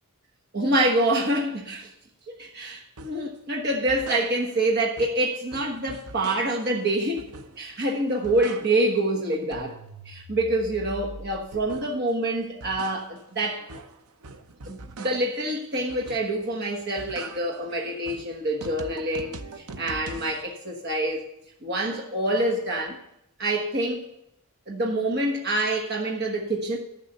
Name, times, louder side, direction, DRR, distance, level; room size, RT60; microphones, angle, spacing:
voice 1, 0.5-1.9 2.4-7.3 7.6-9.8 10.0-13.6 14.7-19.3 19.8-21.2 21.6-23.0 23.4-24.0 24.7-26.8, right 1 dB, 45° right, 1.2 m, -26 dB
sound 1, 3.0-3.3 3.7-4.7 5.0-6.8 7.2-7.8 8.1-9.0 9.3-12.1 12.4-15.5 15.9-16.5 16.8-20.4, right 3 dB, 80° right, 0.8 m, -42 dB
12.5 x 6.9 x 6.6 m
head